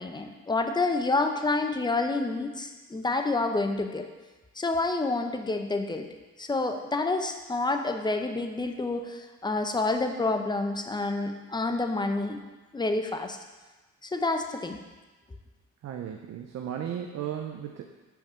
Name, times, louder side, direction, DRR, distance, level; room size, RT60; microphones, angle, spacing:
voice 1, 0.0-4.1 4.6-6.1 6.4-12.4 12.7-13.4 14.0-14.8, left 3 dB, 15° left, 5 dB, 0.7 m, -28 dB
voice 2, 15.8-17.9, right 9 dB, 60° right, 3 dB, 0.6 m, -35 dB
5.5 x 4.7 x 5.6 m, 1.2 s
cardioid pair, 90°, 30 cm